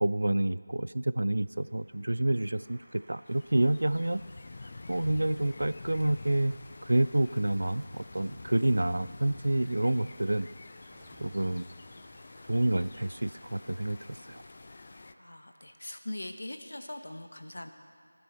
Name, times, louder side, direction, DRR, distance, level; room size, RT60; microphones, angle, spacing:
voice 1, 0.0-4.2 4.9-10.5 11.2-11.7 12.5-14.0 14.3-14.4, right 1 dB, 75° right, 16 dB, 0.3 m, -28 dB
Applause, 1.2-16.0, right 1 dB, 30° right, 3.3 m, -60 dB
sound 1, 3.3-15.1, left 3 dB, 40° left, 0.3 m, -48 dB
sound 2, 10.7-13.5 13.7-13.8, right 2 dB, 5° right, 0.6 m, -62 dB
voice 2, 15.2-17.7, left 1 dB, 75° left, 7 dB, 1.0 m, -41 dB
18.5 x 8.3 x 4.4 m, 2.2 s
figure-of-eight pair, 170°, 0 cm